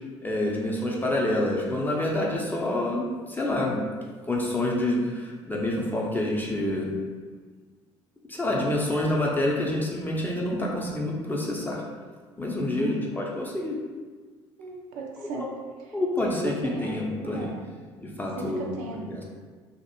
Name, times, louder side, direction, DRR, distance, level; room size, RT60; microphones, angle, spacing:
voice 1, 0.2-3.8 4.3-7.0 8.3-11.8 12.4-13.8 15.3-15.5 15.9-17.5 18.0-18.7 18.9-19.2, left 1 dB, 10° left, -3 dB, 0.6 m, -27 dB
voice 2, 12.7-13.3 14.6-15.5 15.8-17.0 17.3-17.6 18.3-19.2, right 2 dB, 60° right, 0 dB, 0.4 m, -37 dB
2.5 x 2.0 x 2.8 m, 1.5 s
figure-of-eight pair, 55°, 15 cm